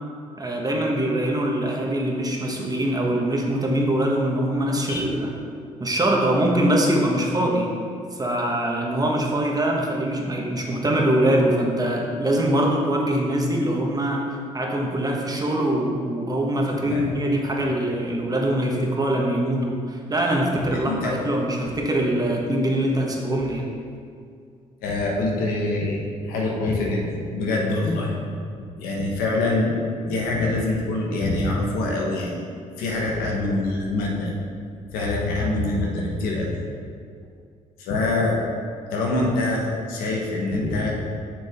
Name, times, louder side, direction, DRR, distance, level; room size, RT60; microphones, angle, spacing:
voice 1, 0.4-5.3 5.8-7.8 8.1-14.2 14.5-23.7, right 1 dB, 25° right, -1 dB, 1.4 m, -23 dB
voice 2, 20.6-21.2 24.8-28.1 28.6-32.4 32.8-34.3 34.9-36.6 37.8-38.4 38.9-40.9, left 2 dB, 85° left, -1 dB, 1.3 m, -25 dB
6.9 x 6.2 x 3.7 m, 2.3 s
supercardioid pair, 65°, 15 cm